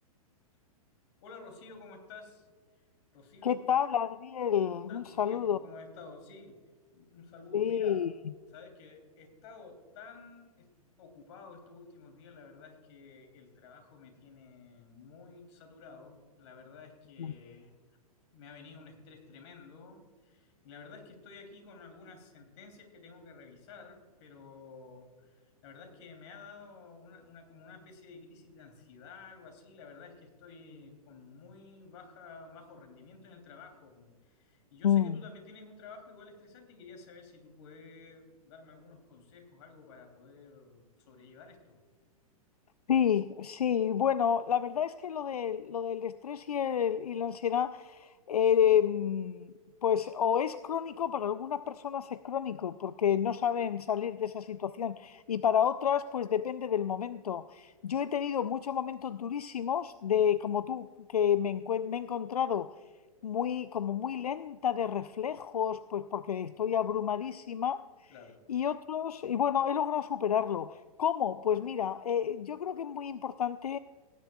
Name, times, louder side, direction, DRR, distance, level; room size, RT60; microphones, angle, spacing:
voice 1, 1.2-2.5 2.7-2.8 3.1-3.6 4.9-6.6 6.9-8.1 8.5-10.7 11.0-17.7 18.3-41.8 68.1-68.4, left 4 dB, 50° left, 4 dB, 2.9 m, -52 dB
voice 2, 3.4-5.6 7.5-8.1 17.2-17.3 34.8-35.2 42.9-49.5 49.8-62.8 63.2-68.1 68.5-73.8, left 8 dB, 80° left, 15 dB, 0.4 m, -30 dB
18.5 x 10.5 x 2.3 m, 1.5 s
figure-of-eight pair, 110°, 19 cm